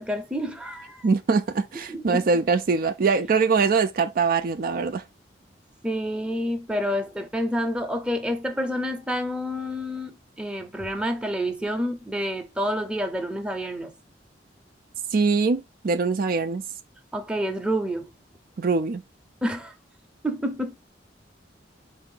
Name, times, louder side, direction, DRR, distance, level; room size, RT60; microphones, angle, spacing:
voice 1, 0.0-1.1 1.9-2.3 5.8-13.9 17.1-18.1 19.4-19.7 20.2-20.8, equal, 5° right, 0.6 m, -28 dB
voice 2, 1.0-5.0 15.1-16.6 18.6-19.0, right 4 dB, 50° right, 0.4 m, -23 dB
4.4 x 2.7 x 3.7 m
head